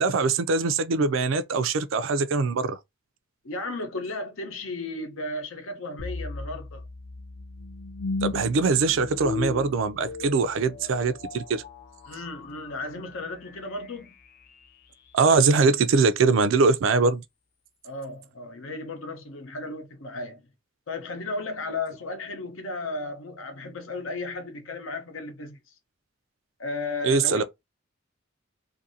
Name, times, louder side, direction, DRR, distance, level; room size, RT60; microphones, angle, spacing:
voice 1, 0.0-2.8 8.2-11.6 15.1-17.2 27.0-27.4, right 4 dB, 70° right, 0.4 m, -22 dB
voice 2, 3.4-6.8 12.1-14.1 17.8-20.4 20.9-25.6 26.6-27.4, left 2 dB, 85° left, 0.8 m, -34 dB
sound 1, 6.0-15.1, left 3 dB, 45° left, 0.5 m, -37 dB
2.6 x 2.5 x 2.7 m
head